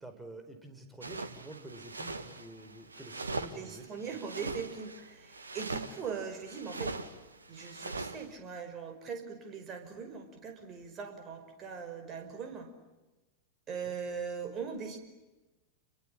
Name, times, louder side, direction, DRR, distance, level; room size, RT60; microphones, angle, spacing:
voice 1, 0.0-4.2 13.8-14.0, right 2 dB, 10° right, 6 dB, 4.8 m, -49 dB
sound 1, 1.0-8.3, right 3 dB, 75° right, 1.8 m, -41 dB
voice 2, 3.5-6.9 7.5-12.7 13.7-15.0, right 6 dB, 30° right, 6 dB, 5.4 m, -40 dB
29.0 x 23.0 x 8.8 m, 1.1 s
figure-of-eight pair, 90°, 0 cm